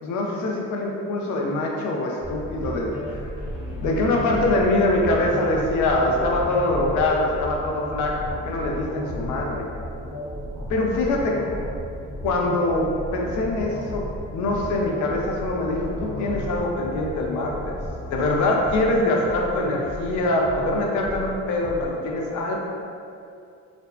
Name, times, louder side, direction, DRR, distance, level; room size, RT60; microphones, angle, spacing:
voice 1, 0.0-3.3 3.8-9.7 10.7-11.3 12.2-17.7 18.1-22.6, left 2 dB, 75° left, -1 dB, 0.5 m, -24 dB
sound 1, 2.2-21.8, equal, 5° right, 0.5 m, -34 dB
2.5 x 2.1 x 2.3 m, 2.5 s
cardioid pair, 90°, 30 cm